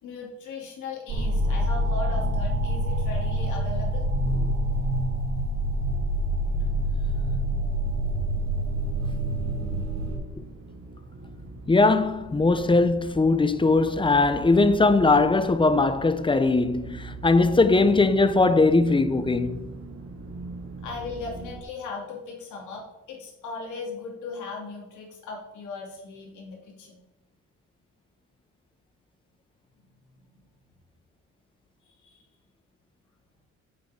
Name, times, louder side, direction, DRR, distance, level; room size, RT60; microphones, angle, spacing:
voice 1, 0.0-4.1 11.4-11.5 17.8-17.9 20.8-27.0 30.1-30.2 31.9-32.2, left 3 dB, 75° left, 2.9 m, -38 dB
sound 1, 1.1-10.2, right 1 dB, 65° right, 2.7 m, -26 dB
sound 2, 9.2-21.6, right 3 dB, 50° right, 1.7 m, -41 dB
voice 2, 11.7-19.7, left 3 dB, 15° left, 0.6 m, -20 dB
8.2 x 8.1 x 3.7 m
cardioid pair, 90°, 30 cm